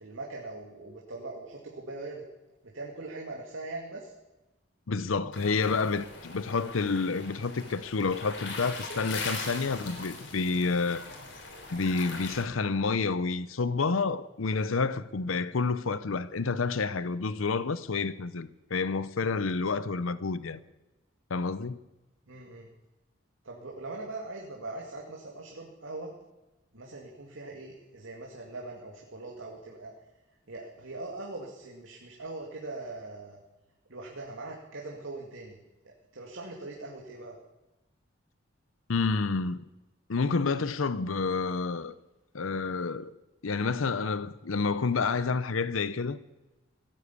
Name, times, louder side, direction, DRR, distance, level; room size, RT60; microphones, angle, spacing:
voice 1, 0.0-2.2 2.6-4.1 22.3-22.7 23.4-26.1 26.7-29.9 30.5-33.4 33.9-35.6 36.1-37.4, right 2 dB, 80° right, 2.2 m, -41 dB
voice 2, 4.9-11.1 11.7-20.6 21.3-21.8 38.9-39.7 40.1-41.9 42.3-43.1 43.4-46.2, left 4 dB, 90° left, 0.7 m, -29 dB
sound 1, 5.3-12.4, left 3 dB, 65° left, 3.5 m, -40 dB
17.0 x 9.9 x 8.4 m
head